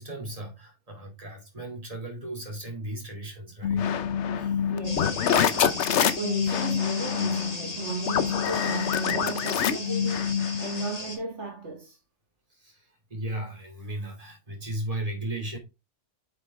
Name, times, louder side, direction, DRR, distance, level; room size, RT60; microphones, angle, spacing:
voice 1, 0.0-3.9 4.3-4.6 12.5-15.6, right 1 dB, 30° right, 2.8 m, -36 dB
sound 1, 3.6-10.9, left 8 dB, 70° left, 1.0 m, -26 dB
voice 2, 4.7-5.8 6.2-12.0, right 3 dB, 70° right, 2.1 m, -36 dB
sound 2, 4.8-11.2, left 2 dB, 30° left, 1.9 m, -37 dB
8.1 x 5.5 x 3.5 m
omnidirectional pair, 1.3 m